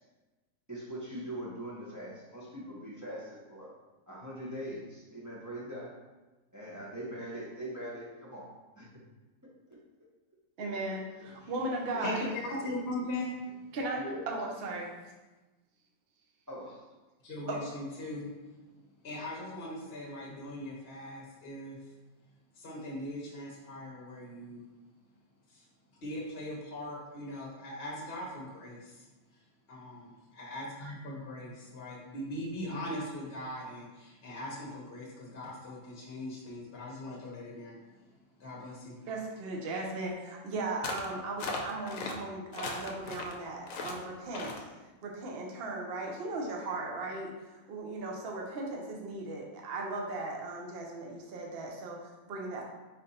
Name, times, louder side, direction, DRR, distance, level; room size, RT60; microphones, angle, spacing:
voice 1, 0.7-3.7 4.1-5.9 6.5-8.9 9.7-9.8 11.4-11.5 11.9-12.0 13.9-14.2 16.5-16.8, equal, 20° right, -6 dB, 0.6 m, -42 dB
voice 2, 10.6-12.2 13.7-14.0 14.3-14.9 17.5-17.6 39.1-44.6 45.0-52.7, right 2 dB, 55° right, 0 dB, 0.8 m, -37 dB
voice 3, 12.0-13.7 17.2-18.3 19.0-21.8 22.5-24.6 25.5-25.7 26.0-29.1 29.7-37.7 38.4-38.9, left 1 dB, 50° left, -3 dB, 0.9 m, -40 dB
sound 1, 40.8-41.1 41.4-42.2 42.5-43.3 43.7-44.0 44.3-44.6, left 3 dB, 75° left, 1.0 m, -37 dB
4.2 x 2.6 x 4.1 m, 1.2 s
omnidirectional pair, 1.5 m